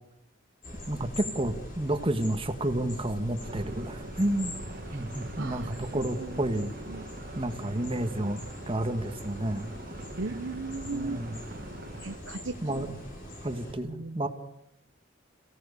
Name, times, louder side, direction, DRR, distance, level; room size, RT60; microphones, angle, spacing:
sound 1, 0.6-13.7, left 1 dB, 45° left, 7.1 m, -43 dB
voice 1, 0.9-4.5 4.9-6.7 7.4-9.7 10.8-11.5 12.6-12.9 13.4-14.3, right 1 dB, 30° right, 7 dB, 1.6 m, -30 dB
sound 2, 3.4-12.2, right 2 dB, 50° right, 1.9 m, -44 dB
voice 2, 5.4-6.3 6.9-7.0 10.2-11.2 12.0-12.9 13.8-14.3, right 3 dB, 80° right, 8 dB, 0.9 m, -37 dB
28.0 x 17.0 x 6.8 m, 0.83 s
head